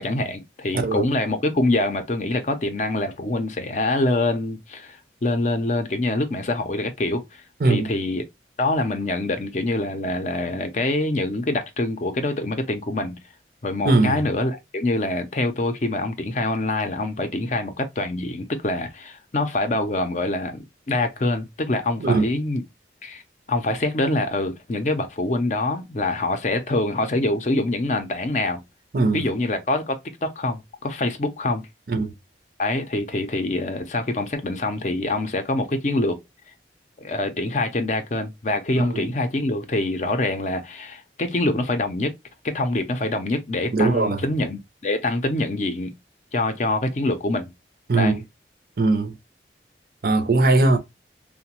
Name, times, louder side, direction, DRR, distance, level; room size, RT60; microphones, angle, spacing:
voice 1, 0.0-7.4 7.7-8.2 8.6-13.2 13.6-22.6 23.0-23.2 23.5-28.6 29.1-31.7 32.6-36.2 37.0-42.1 42.4-45.9 46.3-47.5 48.0-48.2, left 2 dB, 40° left, 0.5 m, -25 dB
voice 2, 0.7-1.0 7.6-7.9 13.8-14.2 22.0-22.2 28.9-29.2 31.9-32.1 38.8-39.1 43.7-44.2 47.9-48.2 48.8-49.1 50.0-50.8, right 3 dB, 55° right, 0.5 m, -20 dB
2.9 x 2.1 x 2.9 m
head